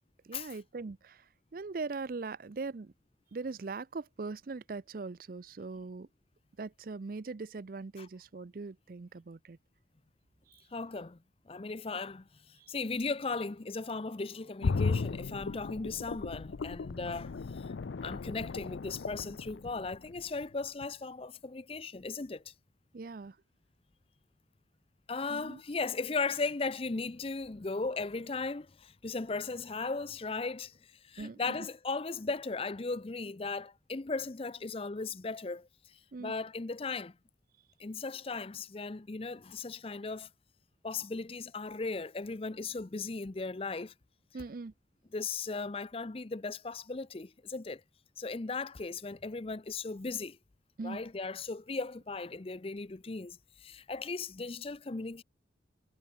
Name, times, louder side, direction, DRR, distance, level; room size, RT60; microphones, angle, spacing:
voice 1, 0.3-1.2 1.5-2.9 3.3-6.1 6.6-9.6 10.5-10.6 12.6-12.7 22.9-23.4 25.3-25.6 31.2-31.7 36.1-36.3 44.3-44.7 50.8-51.0, right 4 dB, 50° right, 0.5 m, -41 dB
voice 2, 10.7-11.2 11.5-17.7 18.0-22.5 25.1-37.2 37.8-40.3 40.8-43.9 45.1-47.8 48.2-50.4 50.8-55.2, left 4 dB, 30° left, 0.6 m, -37 dB
sound 1, 14.6-20.4 20.8-20.9, left 4 dB, 85° left, 0.5 m, -36 dB
head